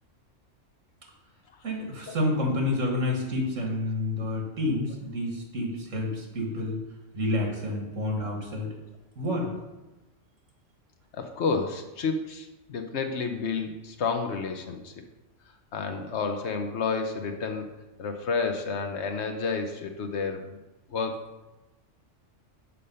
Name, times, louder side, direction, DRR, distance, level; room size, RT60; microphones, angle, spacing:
voice 1, 1.6-6.8 7.1-8.7 9.2-9.5, left 1 dB, 75° right, 0 dB, 2.0 m, -29 dB
voice 2, 11.1-15.0 15.7-17.7 18.0-20.6 20.9-21.3, left 4 dB, 65° left, 6 dB, 1.0 m, -30 dB
6.8 x 5.1 x 5.4 m, 1.1 s
omnidirectional pair, 1.3 m